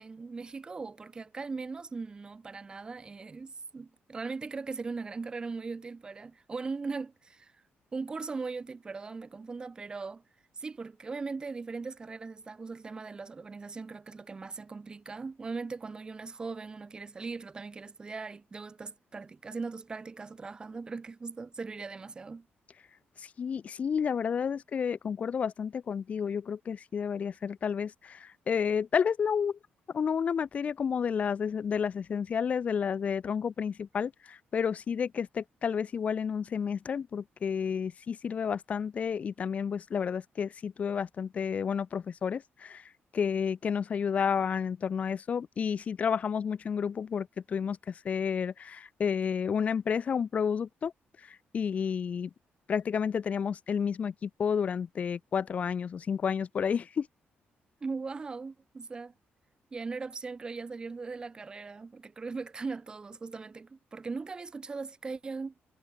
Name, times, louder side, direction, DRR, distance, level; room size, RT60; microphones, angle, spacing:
voice 1, 0.0-7.5 7.9-10.2 10.5-22.5 57.8-59.1 59.7-65.5, right 4 dB, 20° right, 4.8 m, -39 dB
voice 2, 23.2-29.6 29.9-50.9 51.2-52.3 52.7-57.1, left 7 dB, 35° left, 1.3 m, -31 dB
cardioid pair, 180°, 4 cm